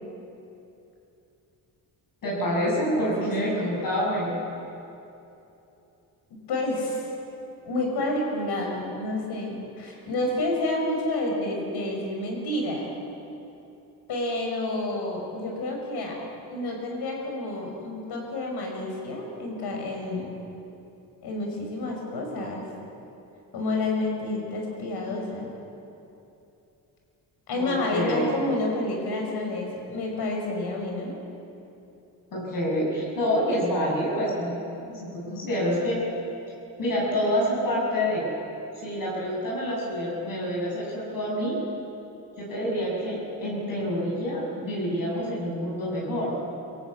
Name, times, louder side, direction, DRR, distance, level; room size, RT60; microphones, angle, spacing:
voice 1, 2.2-4.3 27.5-28.3 32.3-34.6 34.9-36.0 36.8-38.3 38.7-41.6 42.4-46.3, equal, 55° left, -5 dB, 7.5 m, -27 dB
voice 2, 2.9-3.6 6.3-7.1 7.6-12.9 14.1-16.2 16.5-20.3 21.2-22.6 23.5-25.5 27.5-31.1, left 2 dB, 75° left, 0 dB, 6.3 m, -29 dB
23.0 x 17.0 x 8.5 m, 2.8 s
cardioid pair, 105°, 39 cm